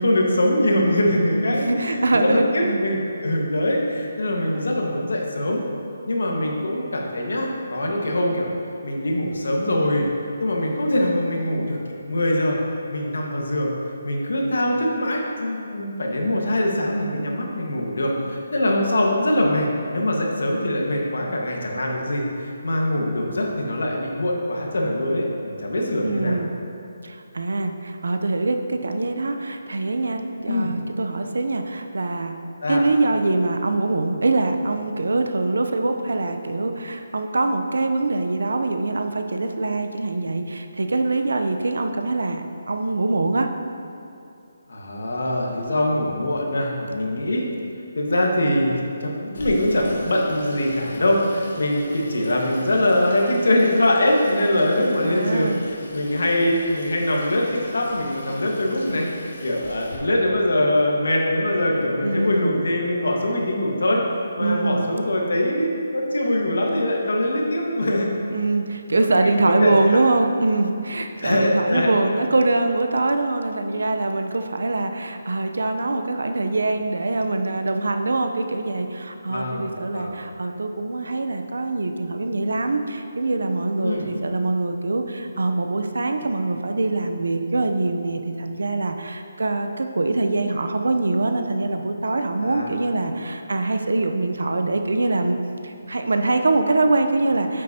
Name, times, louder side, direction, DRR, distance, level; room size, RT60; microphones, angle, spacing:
voice 1, 0.0-5.6 6.1-8.5 8.8-10.0 10.4-11.8 12.1-12.6 12.9-13.7 14.0-19.7 19.9-26.4 30.4-30.7 32.6-32.8 44.7-47.4 47.9-64.0 64.4-68.1 68.9-69.1 69.4-70.0 71.2-71.9 79.2-80.1 83.8-84.1 92.4-92.7, left 1 dB, 80° left, -1 dB, 1.5 m, -23 dB
voice 2, 1.5-2.8 26.0-26.5 27.0-32.4 32.7-43.5 55.0-55.6 62.0-62.6 64.4-64.9 68.3-95.4 95.6-97.6, right 2 dB, 90° right, 6 dB, 0.7 m, -23 dB
Water tap faucet / Sink (filling or washing), 49.3-60.0, left 1 dB, 60° left, 1.8 m, -40 dB
8.8 x 7.5 x 2.9 m, 2.7 s
hypercardioid pair, 170°, 0 cm